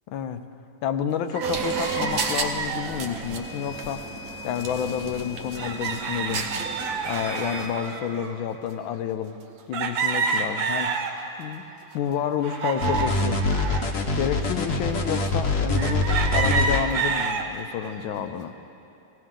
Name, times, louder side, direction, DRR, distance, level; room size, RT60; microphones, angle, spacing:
voice 1, 0.1-0.4 0.8-4.0 4.4-6.5 7.1-9.4 9.7-10.9 11.4-11.7 11.9-13.4 14.2-18.5, left 8 dB, 85° left, 8 dB, 1.4 m, -29 dB
sound 1, 1.3-3.3 4.4-4.6 4.8-4.9 5.6-8.4 8.9-9.0 9.7-11.5 11.9-13.9 14.5-14.6 15.8-17.5 18.0-18.5, right 5 dB, 80° right, 1.7 m, -29 dB
sound 2, 1.4-7.7, right 4 dB, 55° right, 1.1 m, -32 dB
sound 3, 12.8-16.8, left 2 dB, 50° left, 1.1 m, -24 dB
18.5 x 15.5 x 3.8 m, 2.7 s
omnidirectional pair, 2.1 m